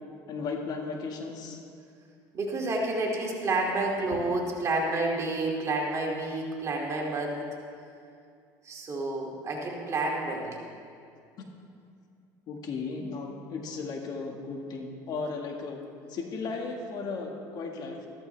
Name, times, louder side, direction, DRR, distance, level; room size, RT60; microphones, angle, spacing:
voice 1, 0.3-1.6 12.5-15.8 16.1-18.1, left 4 dB, 55° left, 2 dB, 1.9 m, -35 dB
voice 2, 2.3-7.5 8.6-10.6, right 2 dB, 35° right, -2 dB, 2.6 m, -29 dB
14.0 x 14.0 x 3.4 m, 2.4 s
supercardioid pair, 105°, 8 cm